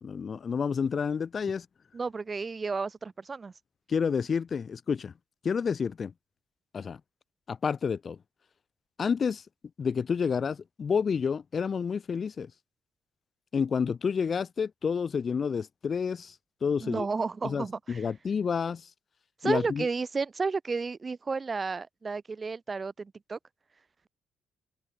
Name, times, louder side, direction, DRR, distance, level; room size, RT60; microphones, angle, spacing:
voice 1, 0.0-1.6 3.9-5.1 5.4-6.1 6.7-7.0 7.5-8.2 9.0-9.4 9.8-12.5 13.5-16.3 16.6-17.1 17.4-18.8 19.4-19.9, left 6 dB, 50° left, 1.3 m, -29 dB
voice 2, 1.9-3.5 16.8-18.1 19.4-23.4, right 4 dB, 35° right, 1.4 m, -32 dB
open air
hypercardioid pair, 50°, 0 cm